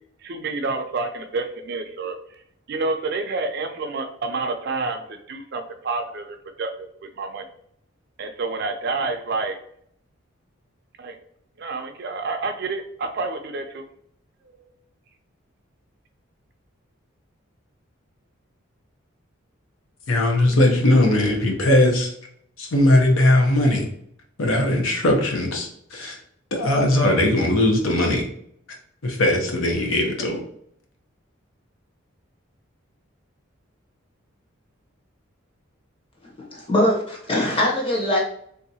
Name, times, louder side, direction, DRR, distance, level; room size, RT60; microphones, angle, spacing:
voice 1, 0.2-2.2 2.7-7.4 8.2-9.6 11.0-11.2 11.6-13.8 14.5-14.6, right 3 dB, 50° right, 6 dB, 0.4 m, -29 dB
voice 2, 20.1-22.1 22.6-23.9 24.4-26.2 26.5-28.2 29.0-30.4, left 1 dB, 75° left, 1 dB, 0.8 m, -19 dB
voice 3, 36.4-38.2, left 1 dB, 25° left, -3 dB, 0.9 m, -22 dB
3.4 x 2.7 x 2.7 m, 0.68 s
head